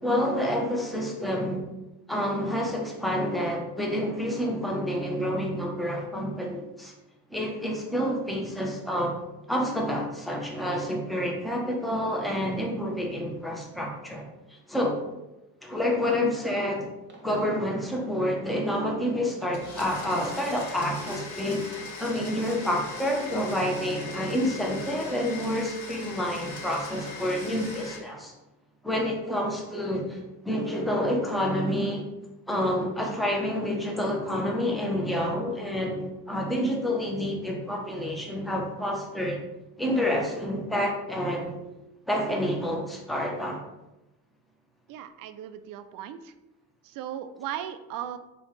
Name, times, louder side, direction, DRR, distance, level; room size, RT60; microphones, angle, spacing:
voice 1, 0.0-1.6 2.1-6.9 7.3-9.2 9.5-15.0 15.6-16.9 17.2-28.3 28.8-32.1 32.5-39.4 39.8-41.5 42.1-43.6, equal, ahead, 0 dB, 1.0 m, -28 dB
sound 1, 16.5-16.7 17.1-17.3 17.7-17.8 18.3-18.4 18.8-19.1 19.4-19.6 20.0-20.1 20.6-20.8 21.2-21.3 21.8-21.9 22.4-22.6 22.9-23.2 23.5-23.7 24.1-24.2 24.7-24.9 25.3-25.4 25.9-26.0 26.5-26.6 27.1-27.2 27.6-27.8 28.2-28.3, right 2 dB, 20° right, 1.4 m, -48 dB
Domestic sounds home sounds, 19.5-28.0, left 3 dB, 35° left, 1.4 m, -40 dB
voice 2, 44.9-46.3 46.8-48.2, right 10 dB, 45° right, 10 dB, 0.5 m, -37 dB
4.0 x 3.8 x 3.3 m, 0.99 s
hypercardioid pair, 60°, 48 cm